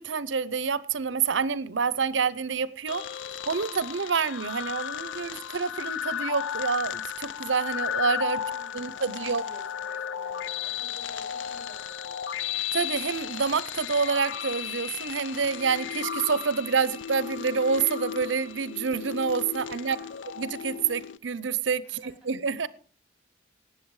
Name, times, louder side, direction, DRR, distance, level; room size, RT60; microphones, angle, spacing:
voice 1, 0.0-3.0 3.5-8.4 8.7-9.4 12.7-20.0 20.4-22.7, right 5 dB, 80° right, 18 dB, 0.7 m, -28 dB
sound 1, 2.9-21.2, left 9 dB, 90° left, 0.5 m, -34 dB
voice 2, 8.5-12.6 19.7-20.1 21.8-22.3, right 1 dB, 5° right, 2 dB, 6.7 m, -53 dB
19.0 x 7.8 x 4.8 m, 0.41 s
head